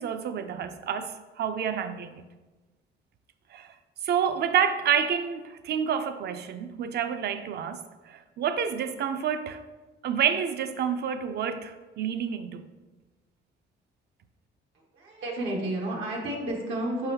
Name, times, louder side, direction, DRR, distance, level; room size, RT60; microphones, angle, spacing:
voice 1, 0.0-2.3 3.5-3.7 4.0-9.6 10.0-12.6, right 8 dB, 55° right, 0.4 m, -29 dB
voice 2, 14.9-17.1, right 1 dB, 85° right, 0.8 m, -31 dB
5.0 x 3.9 x 2.8 m
cardioid pair, 90°, 20 cm